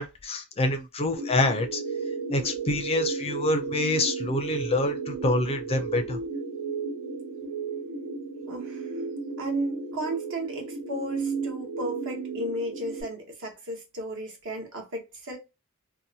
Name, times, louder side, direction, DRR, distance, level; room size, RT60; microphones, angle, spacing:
voice 1, 0.0-1.8 2.3-6.2, left 2 dB, 25° left, 0.4 m, -26 dB
sound 1, 1.1-13.0, right 4 dB, 80° right, 1.5 m, -33 dB
voice 2, 8.5-8.9 9.4-15.4, equal, 60° right, 1.1 m, -35 dB
2.7 x 2.2 x 2.6 m
head